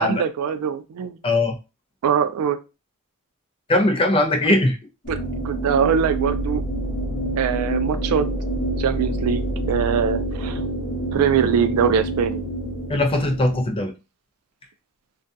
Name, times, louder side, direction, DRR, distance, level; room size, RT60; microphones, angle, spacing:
voice 1, 0.0-1.2 2.0-2.6 5.1-5.2 5.4-6.6 7.4-8.3 8.8-10.6 11.1-12.4, right 7 dB, 85° right, 10 dB, 0.3 m, -22 dB
voice 2, 1.2-1.6 3.7-4.8 12.9-13.9, left 1 dB, 25° left, 4 dB, 0.4 m, -20 dB
sound 1, 5.0-13.6, right 1 dB, 60° left, 1.0 m, -27 dB
2.4 x 2.2 x 2.6 m, 0.28 s
head